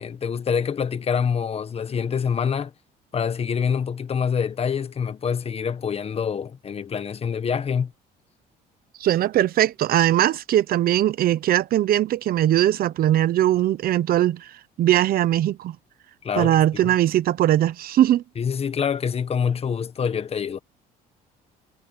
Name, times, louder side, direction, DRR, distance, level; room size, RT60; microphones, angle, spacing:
voice 1, 0.0-2.7 3.1-7.9 16.2-16.9 18.4-20.6, left 7 dB, 35° left, 1.4 m, -26 dB
voice 2, 9.0-14.5 14.8-15.8 16.4-18.2, right 12 dB, 60° right, 1.0 m, -20 dB
cardioid pair, 110°, 17 cm